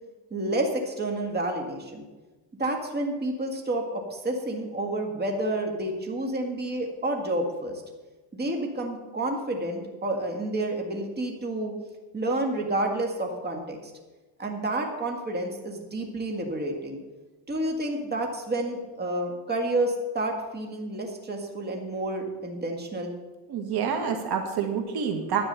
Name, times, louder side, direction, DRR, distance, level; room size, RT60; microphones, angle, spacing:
voice 1, 0.3-2.0 2.6-7.8 8.3-11.7 12.1-13.9 14.4-17.0 17.5-23.1, right 1 dB, 20° right, 2 dB, 1.8 m, -29 dB
voice 2, 23.5-25.4, right 7 dB, 60° right, 4 dB, 1.8 m, -27 dB
11.0 x 8.7 x 6.8 m, 1.2 s
cardioid pair, 130°, 43 cm